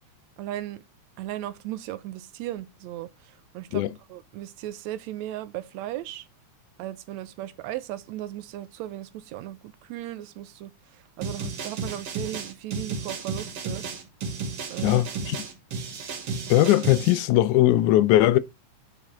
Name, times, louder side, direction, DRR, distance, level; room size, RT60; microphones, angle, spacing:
voice 1, 0.4-0.8 1.2-3.8 4.1-6.3 6.8-13.8 14.7-15.0, right 13 dB, 80° right, 1.8 m, -36 dB
sound 1, 11.2-17.2, right 4 dB, 55° right, 2.3 m, -33 dB
voice 2, 14.8-15.4 16.5-18.4, left 14 dB, 85° left, 2.1 m, -19 dB
8.9 x 5.3 x 3.7 m
omnidirectional pair, 3.4 m